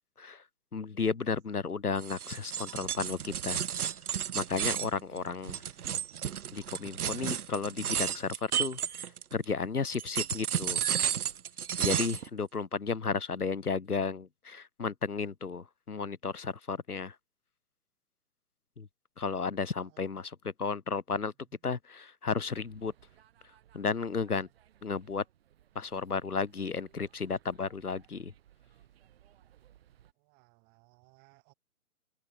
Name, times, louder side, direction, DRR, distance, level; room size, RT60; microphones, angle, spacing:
voice 1, 0.7-3.9 4.3-5.6 6.5-10.8 11.8-17.1 18.8-18.9 19.2-20.3 20.6-21.3 21.6-22.9 23.7-24.5 24.8-25.2 25.7-28.3, left 5 dB, 85° left, 0.9 m, -33 dB
sound 1, 2.0-9.4 9.9-12.3, right 9 dB, 80° right, 0.5 m, -32 dB
voice 2, 19.5-20.2 21.4-21.6 30.1-31.5, right 29 dB, 20° right, 3.1 m, -65 dB
sound 2, 22.4-30.1, right 11 dB, 40° right, 4.9 m, -62 dB
open air
figure-of-eight pair, 125°, 44 cm